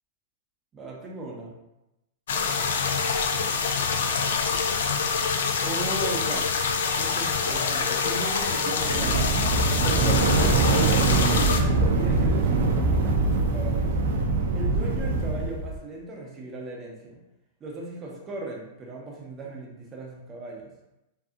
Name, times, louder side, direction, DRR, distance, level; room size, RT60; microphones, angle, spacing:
voice 1, 0.7-1.5 5.6-6.5 7.0-13.9 14.5-17.2 17.6-20.7, right 2 dB, 20° right, -2 dB, 0.5 m, -37 dB
sound 1, 2.3-11.6, left 5 dB, 85° left, 0.3 m, -26 dB
sound 2, 8.7-15.7, right 3 dB, 70° right, 0.4 m, -23 dB
2.6 x 2.5 x 2.4 m, 0.91 s
supercardioid pair, 160°, 0 cm